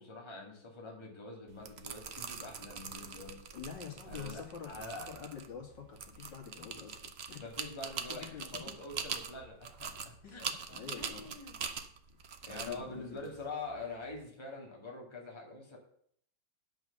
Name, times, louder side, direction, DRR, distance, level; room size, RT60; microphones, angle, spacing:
voice 1, 0.0-3.4 4.1-5.1 7.4-10.5 11.0-11.6 12.4-15.8, left 3 dB, 15° left, -1 dB, 1.9 m, -45 dB
sound 1, 1.5-14.2, right 6 dB, 55° right, 0.7 m, -43 dB
voice 2, 3.5-7.0 7.3-7.4 8.1-8.8 10.2-11.3 12.2-12.3 12.5-13.3, left 7 dB, 75° left, 1 dB, 2.6 m, -47 dB
9.0 x 5.6 x 6.6 m, 0.64 s
omnidirectional pair, 2.0 m